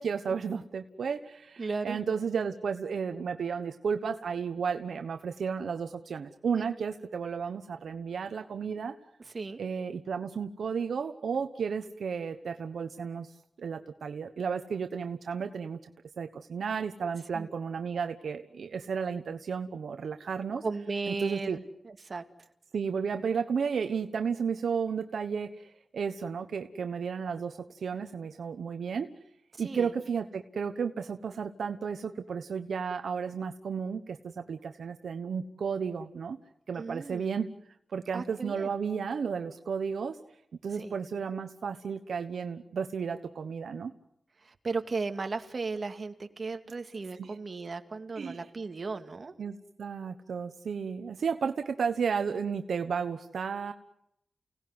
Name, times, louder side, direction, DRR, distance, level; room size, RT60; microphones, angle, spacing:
voice 1, 0.0-9.0 9.6-13.3 13.6-15.8 16.2-20.6 21.1-21.6 22.7-29.1 29.6-36.4 36.7-37.5 37.9-40.2 40.6-43.9 47.2-47.3 48.2-48.5 49.4-53.7, right 6 dB, 90° right, 8 dB, 1.1 m, -33 dB
voice 2, 1.6-2.0 6.5-6.7 9.3-9.6 17.3-17.5 20.6-22.2 29.5-29.9 36.8-37.3 38.1-38.7 40.7-40.9 44.4-49.3, right 4 dB, 55° right, 7 dB, 2.3 m, -36 dB
30.0 x 18.5 x 9.7 m, 0.80 s
cardioid pair, 70°, 0 cm